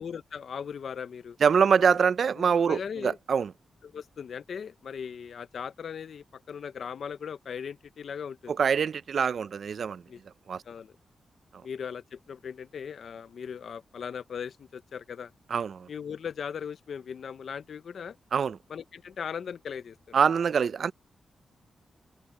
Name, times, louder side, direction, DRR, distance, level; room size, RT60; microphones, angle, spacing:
voice 1, 0.0-1.4 2.4-3.2 3.8-8.5 10.1-10.2 10.7-10.9 11.6-15.3 15.9-18.2 18.7-20.2, left 7 dB, 70° left, 0.6 m, -38 dB
voice 2, 1.4-3.5 8.5-10.0 10.5-10.6 15.5-15.9 18.3-18.6 20.1-20.9, right 6 dB, 65° right, 0.5 m, -24 dB
open air
cardioid pair, 100°, 0 cm